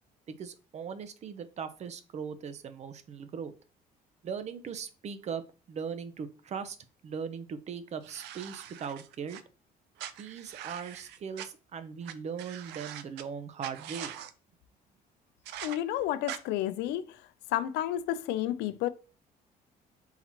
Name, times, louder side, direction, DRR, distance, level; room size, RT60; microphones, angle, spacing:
voice 1, 0.3-3.5 4.2-5.4 5.7-6.8 7.0-9.4 10.2-14.1, right 6 dB, 40° right, 0.6 m, -39 dB
sound 1, 8.0-9.4 10.0-11.5 12.0-12.1 12.4-13.2 13.6-14.3 15.5-15.8 16.3-16.4, right 11 dB, 85° right, 0.5 m, -42 dB
voice 2, 15.6-17.2 17.5-18.9, left 12 dB, 80° left, 0.5 m, -31 dB
3.9 x 2.9 x 4.3 m
cardioid pair, 110°, 17 cm